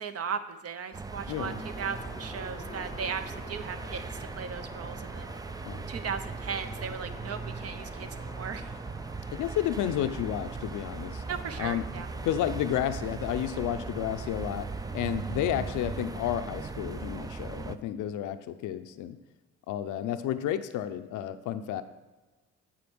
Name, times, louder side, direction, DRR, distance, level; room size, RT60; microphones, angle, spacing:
voice 1, 0.0-5.3 5.9-8.8 11.3-12.1, right 6 dB, 55° right, 10 dB, 0.7 m, -37 dB
sound 1, 0.9-17.8, right 4 dB, 15° right, 0.3 m, -38 dB
voice 2, 1.3-1.6 5.7-5.8 9.3-11.2 11.6-11.8 12.2-19.2 19.7-21.8, left 11 dB, 80° left, 10 dB, 0.5 m, -31 dB
sound 2, 1.3-17.2, left 3 dB, 25° left, 0.7 m, -51 dB
sound 3, 2.2-12.3 13.0-13.1 14.7-14.8 15.2-15.3 15.7-15.8 16.3-16.4, right 3 dB, 75° right, 1.5 m, -56 dB
8.5 x 4.5 x 6.1 m, 1.2 s
cardioid pair, 90°, 30 cm